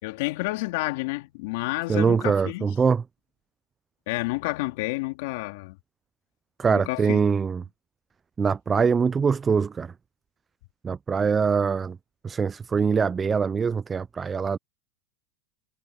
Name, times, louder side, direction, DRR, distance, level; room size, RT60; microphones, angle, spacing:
voice 1, 0.0-2.7 4.1-5.8 6.7-7.2, left 22 dB, 70° left, 3.6 m, -30 dB
voice 2, 1.9-3.0 6.6-7.6 8.4-9.9 10.8-12.0 12.2-14.6, right 6 dB, 25° right, 0.4 m, -23 dB
hypercardioid pair, 105°, 0 cm